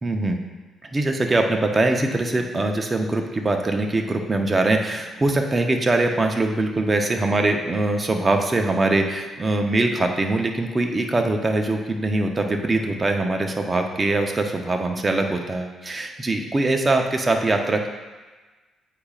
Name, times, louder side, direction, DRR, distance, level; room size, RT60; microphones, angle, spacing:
voice 1, 0.0-0.4 0.9-17.9, right 2 dB, 25° right, 3 dB, 0.7 m, -22 dB
8.4 x 4.8 x 2.4 m, 1.3 s
cardioid pair, 90°, 0 cm